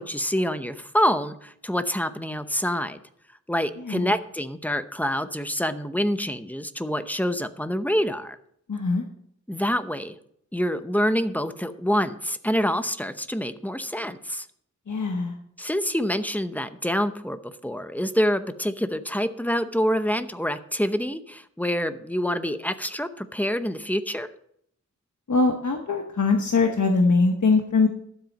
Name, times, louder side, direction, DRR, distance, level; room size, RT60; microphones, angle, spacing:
voice 1, 0.0-3.0 3.5-8.4 9.5-10.2 10.5-14.5 15.6-24.3, equal, 5° left, 10 dB, 0.8 m, -26 dB
voice 2, 8.7-9.0 14.9-15.3 25.3-27.9, left 3 dB, 75° left, 3 dB, 1.1 m, -22 dB
12.5 x 7.7 x 5.3 m, 0.70 s
wide cardioid pair, 70°, 30 cm